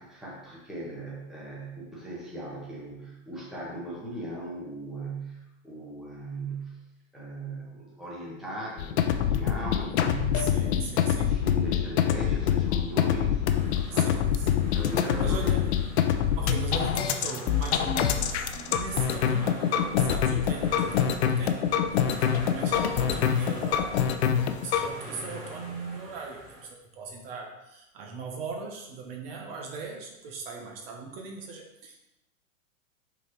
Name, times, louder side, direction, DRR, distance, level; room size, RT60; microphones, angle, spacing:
voice 1, 0.0-6.8 7.1-10.6 10.9-15.5, right 2 dB, ahead, -6 dB, 1.1 m, -39 dB
sound 1, 8.8-24.9, left 9 dB, 50° left, 0.6 m, -25 dB
voice 2, 10.3-11.4 13.9-14.5 15.1-15.7 16.0-24.1 24.6-32.0, right 4 dB, 45° right, 1 dB, 1.0 m, -39 dB
sound 2, 13.5-26.7, equal, 20° right, 1.7 m, -44 dB
5.7 x 4.0 x 4.5 m, 0.92 s
hypercardioid pair, 150°, 42 cm